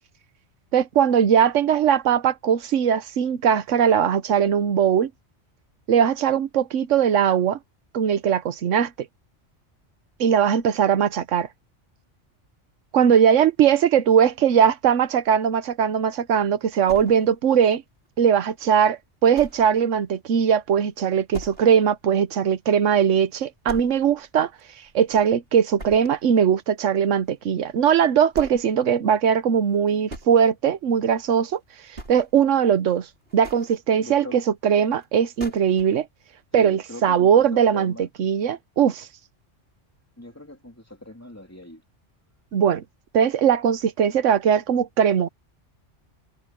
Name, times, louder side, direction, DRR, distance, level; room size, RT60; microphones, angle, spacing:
voice 1, 0.7-5.1 5.9-7.6 7.9-8.9 10.2-11.5 12.9-17.8 18.2-24.5 24.9-31.6 32.1-33.1 33.3-36.1 36.5-39.1 42.5-42.8 43.1-45.3, right 8 dB, 90° right, 1.2 m, -20 dB
sound 1, 16.9-17.6 18.1-18.2 18.6-18.7 19.3-19.8 20.1-20.2 20.6-20.7 21.3-21.9 22.2-22.3 22.8-22.9 23.7-24.3 24.6-25.4 25.8-26.3 27.6-27.7 28.3-28.7 29.7-30.3 31.3-31.5 31.9-32.5 33.2-33.8 35.0-35.1 35.4-35.9, right 1 dB, 55° right, 5.9 m, -40 dB
voice 2, 34.0-34.4 36.5-38.1 40.2-41.8, left 1 dB, 10° left, 3.4 m, -41 dB
omnidirectional pair, 1.2 m